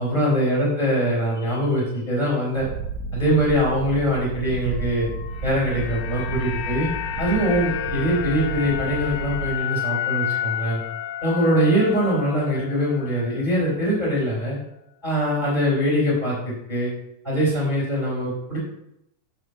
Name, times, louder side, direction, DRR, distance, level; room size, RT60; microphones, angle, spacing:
voice 1, 0.0-2.6 3.1-5.1 5.4-6.9 7.2-10.8 11.2-14.6 15.0-16.9 17.2-18.6, equal, 15° left, -7 dB, 3.2 m, -22 dB
Purr, 2.6-9.6, right 4 dB, 85° right, 2.2 m, -32 dB
sound 1, 5.1-13.4 13.7-13.9, left 11 dB, 85° left, 1.4 m, -31 dB
5.9 x 5.1 x 6.5 m, 0.80 s
omnidirectional pair, 3.6 m